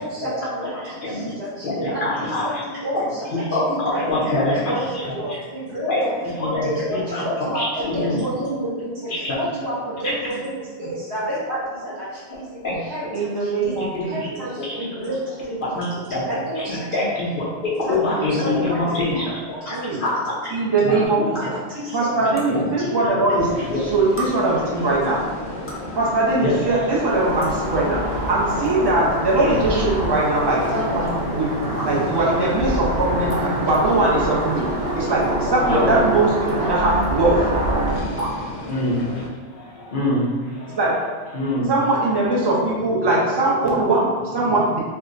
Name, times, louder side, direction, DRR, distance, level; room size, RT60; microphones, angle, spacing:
voice 1, 0.0-13.8 14.1-16.9 17.8-19.0 19.6-20.0 21.2-22.9, right 1 dB, 85° right, -10 dB, 1.7 m, -30 dB
voice 2, 0.8-1.3 1.6-2.6 2.9-5.1 5.9-8.2 9.1-9.4 10.0-10.1 12.6-12.8 13.8-14.1 14.6-14.8 15.6-16.3 16.6-20.3 20.8-21.1 21.4-21.5 22.2-22.7 23.1-23.2 23.5-23.9 26.4-26.7 29.4-29.9 35.7-36.0 38.7-39.0 39.4-40.8 41.3-41.7 43.3-43.4, left 2 dB, 55° left, -5 dB, 0.8 m, -25 dB
voice 3, 4.3-4.7 10.8-10.9 13.1-14.2 18.0-19.0 19.7-20.0 20.5-21.4 21.9-23.5 23.8-25.2 26.0-28.0 28.3-37.4 37.7-38.3 40.8-40.9 41.7-44.8, right 2 dB, 30° right, -5 dB, 0.6 m, -21 dB
sound 1, 21.0-21.1 22.4-22.5 23.5-23.6 24.2-24.3 25.4-25.9 26.9-27.0 27.4-27.5 28.3-28.6 29.1-29.2 30.1-30.2 31.1-31.2 31.8-31.9 33.3-33.5 33.7-33.8 34.9-35.2 36.5-36.7 37.0-37.1 38.2-38.4, right 1 dB, 20° left, 0.4 m, -32 dB
sound 2, 23.4-39.3, left 1 dB, 85° left, 0.9 m, -34 dB
sound 3, 27.1-38.0, right 1 dB, 70° right, 0.8 m, -26 dB
4.5 x 2.1 x 2.5 m, 1.5 s
omnidirectional pair, 1.1 m